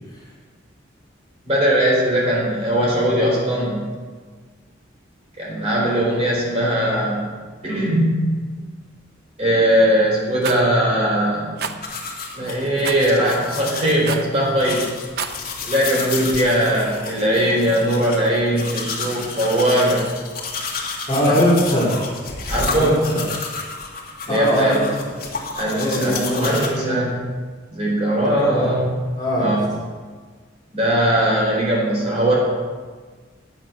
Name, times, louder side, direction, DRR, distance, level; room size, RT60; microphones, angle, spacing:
voice 1, 1.4-3.9 5.4-7.3 7.6-8.2 9.4-11.6 12.3-14.9 15.6-20.1 21.3-21.4 22.5-23.0 24.3-24.8 25.6-27.2 27.7-28.9 29.4-29.6 30.7-32.4, right 1 dB, 35° right, -4 dB, 3.9 m, -20 dB
Rattle, 10.4-10.6 11.6-11.8 12.8-13.1 14.0-14.3 15.0-15.4, right 6 dB, 55° right, 0.6 m, -28 dB
sound 1, 11.8-26.7, left 4 dB, 50° left, 2.0 m, -31 dB
voice 2, 21.1-22.0 22.7-23.3 24.3-25.1 25.7-27.1 28.5-28.8 29.1-29.6, equal, 20° left, -6 dB, 2.4 m, -21 dB
10.5 x 8.5 x 6.0 m, 1.5 s
head